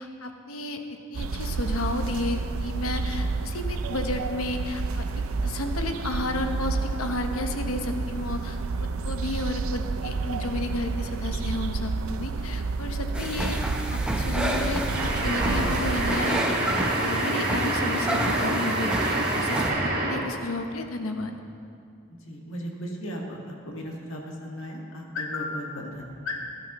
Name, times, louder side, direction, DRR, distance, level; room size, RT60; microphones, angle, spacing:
voice 1, 0.0-5.0 5.4-13.6 13.9-21.4, left 2 dB, 85° left, 5 dB, 0.9 m, -32 dB
sound 1, 1.1-16.1, right 4 dB, 80° right, 0.5 m, -30 dB
sound 2, 13.1-19.7, right 1 dB, 5° right, 0.8 m, -30 dB
sound 3, 14.9-20.4, right 1 dB, 45° right, 1.8 m, -27 dB
voice 2, 22.3-26.4, left 1 dB, 65° left, -1 dB, 1.7 m, -35 dB
18.5 x 11.5 x 3.0 m, 2.4 s
head